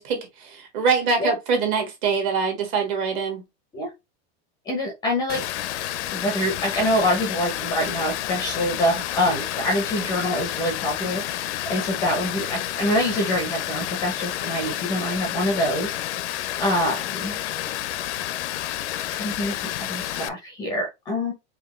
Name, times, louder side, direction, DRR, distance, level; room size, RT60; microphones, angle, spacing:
voice 1, 0.0-3.4, right 5 dB, 35° right, 1.4 m, -24 dB
voice 2, 4.7-5.4 6.1-16.0 16.6-17.4 19.1-21.3, equal, 10° left, 0.6 m, -25 dB
Water, 5.3-20.3, left 13 dB, 75° left, 0.5 m, -30 dB
4.7 x 2.7 x 3.1 m
supercardioid pair, 175°, 34 cm